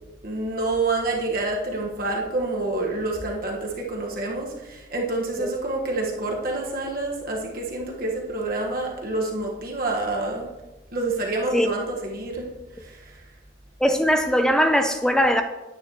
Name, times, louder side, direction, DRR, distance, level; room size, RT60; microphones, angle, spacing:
voice 1, 0.2-10.5 10.9-12.5 12.8-13.2, right 2 dB, 45° right, -1 dB, 1.4 m, -28 dB
voice 2, 13.8-15.4, equal, 5° left, 7 dB, 0.5 m, -20 dB
9.7 x 9.3 x 3.0 m, 1.1 s
head